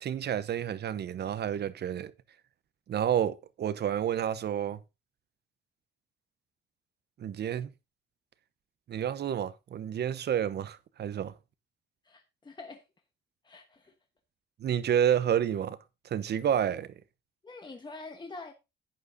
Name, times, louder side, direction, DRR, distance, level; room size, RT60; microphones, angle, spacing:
voice 1, 0.0-2.1 2.9-4.8 7.2-7.7 8.9-11.3 14.6-15.8 16.0-16.9, right 9 dB, 55° right, 0.8 m, -29 dB
voice 2, 12.0-12.8 13.4-13.9 17.4-18.5, left 3 dB, 20° left, 1.2 m, -45 dB
11.5 x 9.0 x 2.7 m
cardioid pair, 90°, 20 cm